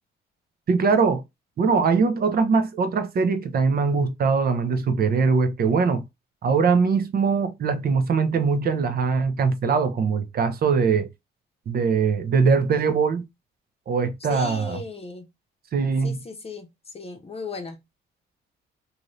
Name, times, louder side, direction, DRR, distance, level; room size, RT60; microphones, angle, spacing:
voice 1, 0.7-1.2 1.6-6.0 6.4-11.1 11.7-13.2 13.9-14.8 15.7-16.1, right 5 dB, 50° right, 0.7 m, -21 dB
voice 2, 14.3-15.3 16.0-16.7 16.9-17.8, left 3 dB, 30° left, 0.7 m, -36 dB
2.7 x 2.6 x 3.1 m
cardioid pair, 90°, 20 cm